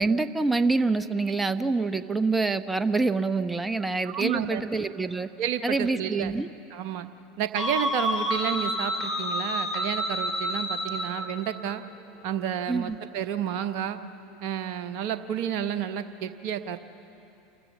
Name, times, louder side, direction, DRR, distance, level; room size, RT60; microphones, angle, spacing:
voice 1, 0.0-5.3 5.6-6.5 12.7-13.0, right 3 dB, 10° right, 11 dB, 0.8 m, -26 dB
voice 2, 4.0-4.6 5.4-6.3 6.7-7.1 7.4-11.8 12.2-14.0 14.4-16.8, right 9 dB, 55° right, 8 dB, 0.9 m, -31 dB
sound 1, 7.6-11.3, equal, 20° left, 2.9 m, -29 dB
28.0 x 14.5 x 7.3 m, 2.9 s
figure-of-eight pair, 80°, 0 cm